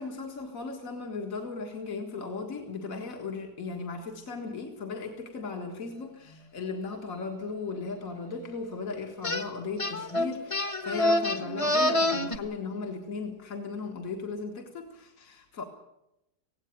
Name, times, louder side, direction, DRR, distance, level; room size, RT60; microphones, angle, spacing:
voice 1, 0.0-15.6, left 4 dB, 65° left, 3 dB, 2.2 m, -37 dB
sound 1, 9.2-9.5 9.8-12.4, left 1 dB, 25° left, 1.2 m, -26 dB
17.5 x 17.0 x 9.3 m, 0.88 s
omnidirectional pair, 1.6 m